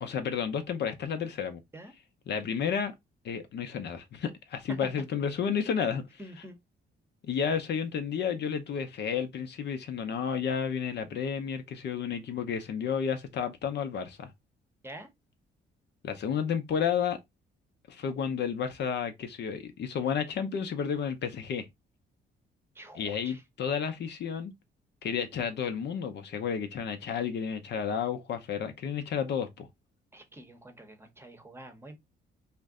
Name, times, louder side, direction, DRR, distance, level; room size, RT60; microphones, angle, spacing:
voice 1, 0.0-1.6 2.3-2.9 3.2-6.0 7.3-14.3 16.0-17.2 17.9-21.7 23.0-24.5 25.0-29.7, left 7 dB, 60° left, 0.6 m, -31 dB
voice 2, 6.2-6.6 14.8-15.1 22.7-23.4 30.1-31.9, right 1 dB, 10° right, 0.8 m, -47 dB
2.5 x 2.1 x 3.5 m
cardioid pair, 90°, 20 cm